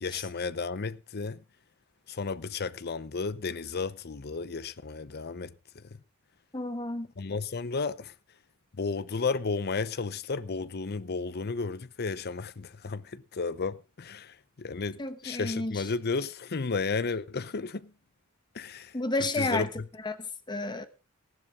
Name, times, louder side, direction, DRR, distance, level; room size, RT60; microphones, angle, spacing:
voice 1, 0.0-1.4 2.1-5.9 7.2-8.1 8.8-17.9 18.5-19.0 19.4-19.9, left 4 dB, 50° left, 0.7 m, -33 dB
voice 2, 6.5-7.1 15.0-15.8 18.9-19.7 20.0-20.9, left 2 dB, 20° left, 1.2 m, -31 dB
15.0 x 11.0 x 3.6 m
head